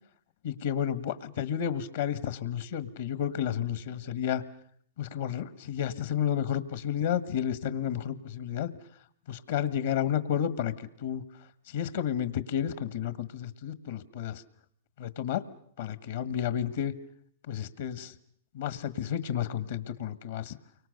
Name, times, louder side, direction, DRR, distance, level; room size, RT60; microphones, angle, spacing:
voice 1, 0.4-4.4 5.0-8.7 9.3-11.2 11.7-14.4 15.0-15.4 15.8-16.9 17.5-18.1 18.5-20.5, left 9 dB, 70° left, 13 dB, 1.6 m, -31 dB
29.5 x 24.0 x 6.7 m, 0.63 s
hypercardioid pair, 130°, 0 cm